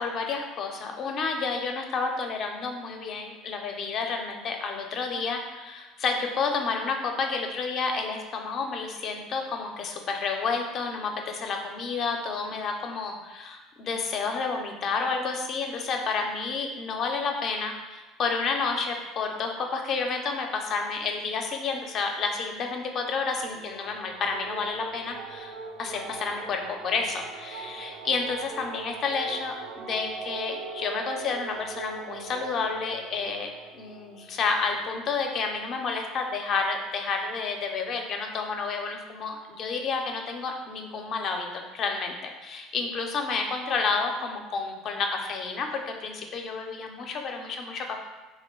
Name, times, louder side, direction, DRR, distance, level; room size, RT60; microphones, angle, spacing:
voice 1, 0.0-25.5 25.8-48.0, left 4 dB, 50° left, 3 dB, 0.4 m, -30 dB
sound 1, 23.4-35.2, right 4 dB, 70° right, 0.3 m, -41 dB
3.0 x 2.1 x 3.6 m, 1.2 s
supercardioid pair, 100°, 0 cm